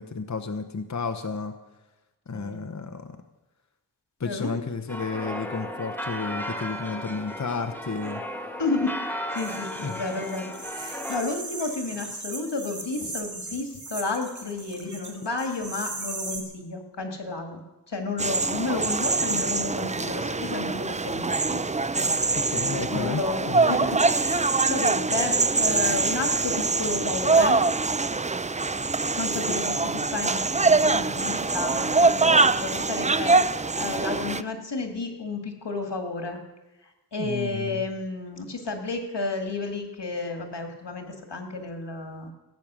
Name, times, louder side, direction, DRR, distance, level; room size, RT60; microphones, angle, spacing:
voice 1, 0.0-1.5 2.3-3.2 4.2-8.2 9.8-10.0 22.5-23.6 29.6-29.8 37.2-37.8, left 4 dB, 45° left, 8 dB, 0.9 m, -32 dB
voice 2, 2.3-2.6 4.2-4.5 8.6-8.9 9.3-17.6 17.9-21.7 21.9-22.2 22.6-27.6 29.2-36.4 37.1-42.3, left 3 dB, 85° left, 4 dB, 2.0 m, -32 dB
sound 1, 4.9-11.2, equal, 5° left, 1.4 m, -35 dB
sound 2, 9.3-16.4, right 2 dB, 45° right, 2.3 m, -38 dB
sound 3, 18.2-34.4, right 3 dB, 20° right, 0.4 m, -24 dB
17.5 x 8.8 x 6.2 m, 1.1 s
wide cardioid pair, 60°, 41 cm